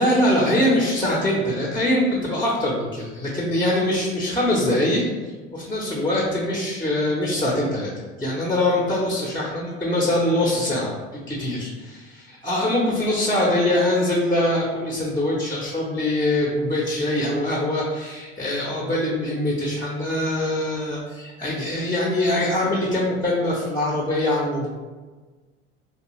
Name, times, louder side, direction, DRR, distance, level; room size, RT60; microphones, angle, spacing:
voice 1, 0.0-7.9 8.2-10.9 11.3-24.7, left 1 dB, 10° left, -4 dB, 0.6 m, -23 dB
2.6 x 2.2 x 3.0 m, 1.3 s
supercardioid pair, 85°, 31 cm